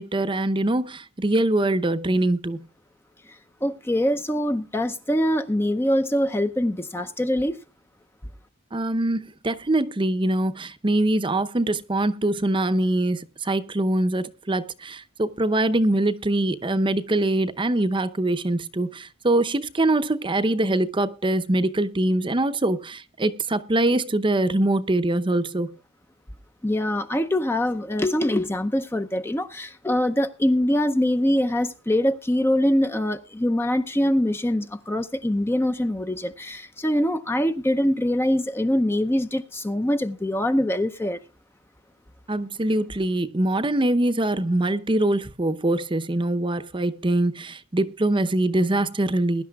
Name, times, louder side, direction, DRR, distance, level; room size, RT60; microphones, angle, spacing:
voice 1, 0.0-2.6 8.7-25.7 42.3-49.4, right 1 dB, 25° right, 0.7 m, -23 dB
voice 2, 3.6-7.6 26.6-41.2, left 1 dB, 10° left, 0.6 m, -23 dB
22.0 x 11.5 x 2.3 m
head